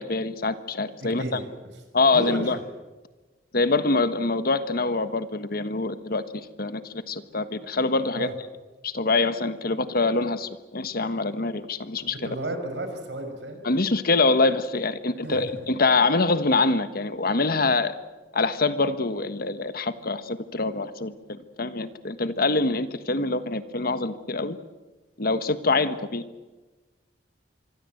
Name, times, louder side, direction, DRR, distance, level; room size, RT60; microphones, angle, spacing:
voice 1, 0.0-1.2 1.9-2.6 3.5-6.2 6.6-8.3 8.8-12.2 13.6-17.9 18.3-21.1 21.6-24.6 25.2-26.2, left 3 dB, 60° left, 11 dB, 1.4 m, -24 dB
voice 2, 1.0-1.4 2.1-2.5 8.1-8.3 12.0-13.6 15.2-15.7, right 1 dB, 85° right, 5 dB, 6.0 m, -33 dB
25.5 x 22.5 x 8.0 m, 1.2 s
head